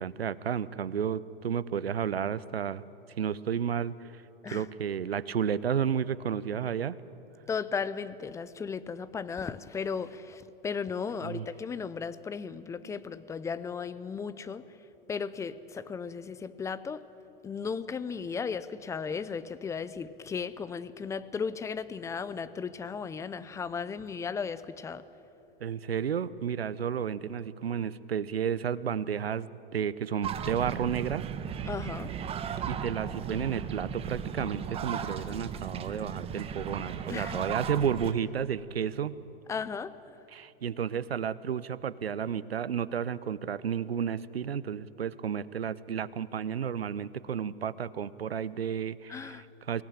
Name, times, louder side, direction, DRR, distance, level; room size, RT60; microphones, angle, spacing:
voice 1, 0.0-2.8 3.2-4.2 4.5-7.0 11.2-11.5 12.8-13.0 25.6-31.3 32.7-39.1 40.3-49.8, right 8 dB, 85° right, 17 dB, 0.8 m, -32 dB
voice 2, 7.5-14.6 15.1-17.0 17.4-25.0 31.7-32.1 37.1-37.4 39.5-39.9 49.1-49.4, left 6 dB, 10° left, 15 dB, 0.5 m, -35 dB
sound 1, 30.2-38.1, right 7 dB, 20° right, 1.1 m, -36 dB
23.0 x 17.5 x 8.8 m, 3.0 s
hypercardioid pair, 115°, 30 cm